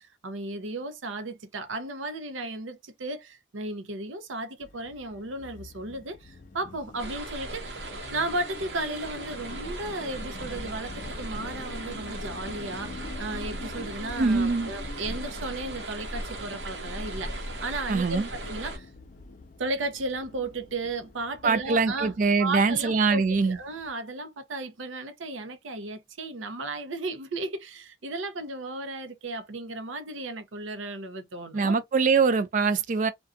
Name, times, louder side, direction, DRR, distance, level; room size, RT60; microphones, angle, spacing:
voice 1, 0.0-7.8 8.1-18.9 19.6-22.1 22.4-31.8, right 2 dB, 90° right, 0.6 m, -35 dB
sound 1, 4.6-23.9, left 3 dB, 45° left, 0.4 m, -46 dB
sound 2, 7.0-18.8, right 1 dB, 65° right, 0.9 m, -38 dB
voice 2, 14.2-14.7 17.9-18.3 21.4-23.6 31.5-33.1, right 4 dB, 40° right, 0.3 m, -23 dB
2.5 x 2.2 x 2.3 m
head